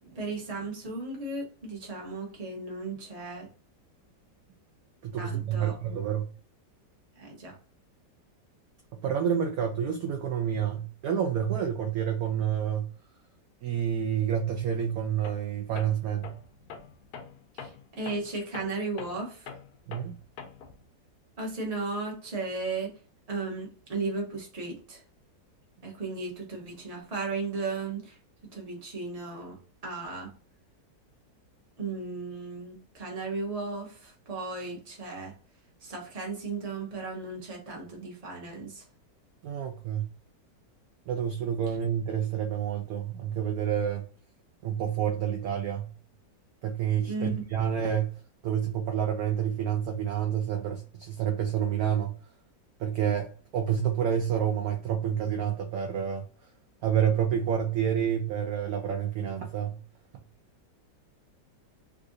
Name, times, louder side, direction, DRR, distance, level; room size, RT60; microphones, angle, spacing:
voice 1, 0.0-3.5 5.2-5.8 7.2-7.6 17.5-19.5 21.4-23.0 23.3-25.0 25.8-28.2 28.5-29.6 29.8-30.3 31.8-35.3 35.8-38.8 47.0-47.4, right 3 dB, 25° right, 0.9 m, -35 dB
voice 2, 5.0-6.3 8.9-12.9 13.6-16.3 19.9-20.2 39.4-40.0 41.1-44.0 44.6-45.9 46.6-48.2 48.4-52.1 52.8-56.2 56.8-59.8, right 9 dB, 70° right, 0.9 m, -29 dB
Tools, 15.2-15.5 15.8-20.8, left 6 dB, 70° left, 1.0 m, -44 dB
3.7 x 2.5 x 2.5 m
omnidirectional pair, 1.9 m